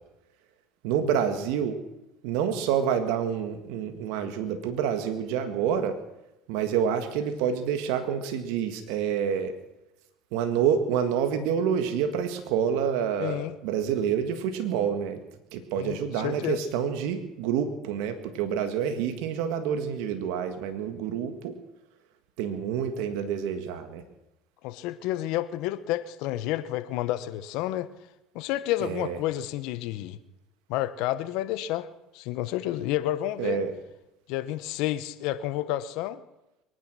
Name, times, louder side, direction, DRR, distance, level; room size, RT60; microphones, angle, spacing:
voice 1, 0.8-1.8 2.2-6.0 6.5-9.5 10.3-15.2 15.5-21.6 22.4-24.0 28.8-29.2 33.4-33.7, right 8 dB, 80° right, 7 dB, 1.7 m, -28 dB
voice 2, 13.2-13.5 15.8-16.6 24.6-27.9 28.3-30.2 30.7-31.9 32.1-33.6 34.3-36.2, left 14 dB, 75° left, 13 dB, 1.0 m, -30 dB
23.0 x 9.8 x 6.2 m, 0.91 s
supercardioid pair, 100°, 0 cm